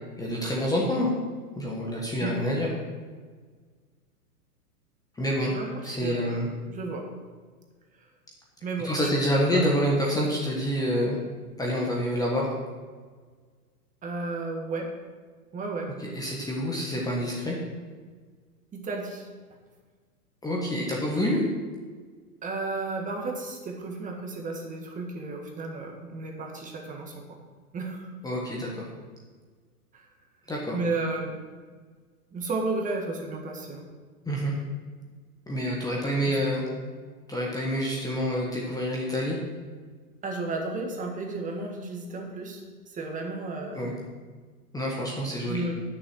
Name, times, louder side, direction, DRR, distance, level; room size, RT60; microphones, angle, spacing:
voice 1, 0.2-1.1 1.5-2.7 5.2-5.5 5.8-6.5 8.8-11.2 11.6-12.5 16.0-17.6 20.4-21.4 28.2-28.9 30.5-30.8 34.2-34.5 35.5-36.7 37.3-39.4 43.7-43.9 44.7-45.7, equal, 10° left, -3 dB, 1.3 m, -27 dB
voice 2, 5.5-7.1 8.0-8.1 8.6-8.9 9.5-9.6 14.0-14.9 15.5-15.9 18.7-19.3 22.4-27.4 27.7-28.1 29.9-30.1 30.7-31.4 32.3-33.9 36.3-36.4 40.2-43.9 45.5-45.7, right 3 dB, 15° right, 1 dB, 1.6 m, -33 dB
9.4 x 6.8 x 6.3 m, 1.5 s
hypercardioid pair, 125°, 46 cm